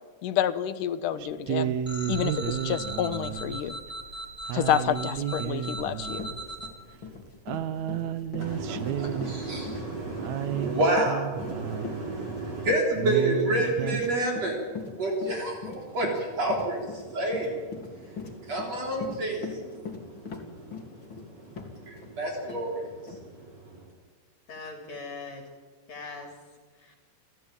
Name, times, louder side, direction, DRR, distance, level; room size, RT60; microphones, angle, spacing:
voice 1, 0.2-1.8 2.1-3.8 4.5-6.3, left 10 dB, 75° left, 12 dB, 2.6 m, -28 dB
sound 1, 1.2-12.2 12.6-12.7 13.0-14.1, right 10 dB, 70° right, 1.9 m, -32 dB
sound 2, 1.8-6.7, right 1 dB, ahead, 4.1 m, -38 dB
Run, 5.7-5.8 6.1-22.1 22.5-22.6 23.1-23.2, left 5 dB, 35° left, 3.5 m, -40 dB
voice 2, 8.4-23.8, right 1 dB, 50° right, -1 dB, 4.9 m, -30 dB
voice 3, 24.5-25.5 25.9-26.3 26.7-27.0, left 3 dB, 50° left, 2 dB, 4.2 m, -40 dB
29.5 x 14.5 x 9.0 m, 1.5 s
omnidirectional pair, 3.9 m